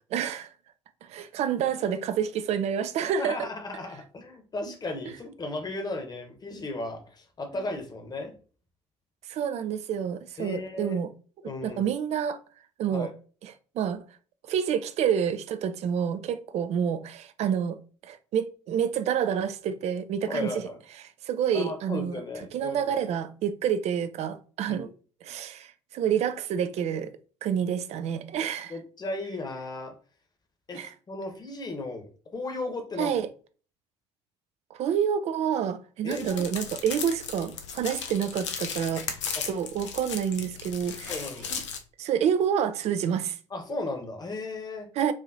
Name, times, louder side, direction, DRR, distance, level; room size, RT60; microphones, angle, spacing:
voice 1, 0.1-0.5 1.0-3.5 7.5-7.6 9.3-11.1 11.6-12.4 12.8-13.1 13.4-14.0 14.5-20.6 21.2-22.2 22.5-24.9 25.2-27.1 27.4-28.7 30.7-30.9 33.0-33.3 34.7-41.2 41.5-41.6 42.0-43.4 45.0-45.1, right 8 dB, 45° right, 0.5 m, -28 dB
voice 2, 3.2-8.3 10.4-11.0 11.4-11.8 12.9-13.1 20.2-20.8 21.5-23.0 24.7-24.9 28.7-29.9 30.7-32.1 32.3-33.2 36.0-36.5 39.3-39.4 41.1-41.5 43.5-44.9, left 2 dB, 25° left, 1.1 m, -35 dB
sound 1, 36.1-41.8, left 6 dB, 75° left, 0.6 m, -36 dB
4.8 x 2.8 x 2.7 m
figure-of-eight pair, 55°, 16 cm